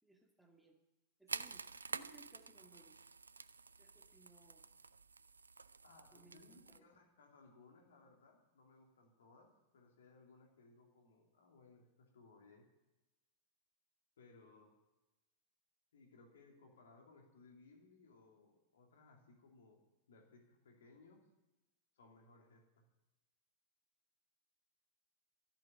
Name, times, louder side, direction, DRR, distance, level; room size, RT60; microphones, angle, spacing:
voice 1, 0.0-0.8 1.2-3.0 3.8-4.7 6.1-6.9, right 2 dB, 5° right, 2 dB, 1.9 m, -65 dB
sound 1, 1.3-6.8, right 4 dB, 75° right, 0.4 m, -49 dB
voice 2, 5.8-12.7 14.2-14.7 15.9-19.8 20.1-21.3 21.9-22.8, left 3 dB, 65° left, 1 dB, 2.9 m, -64 dB
13.5 x 8.7 x 8.7 m, 1.0 s
figure-of-eight pair, 90°, 0 cm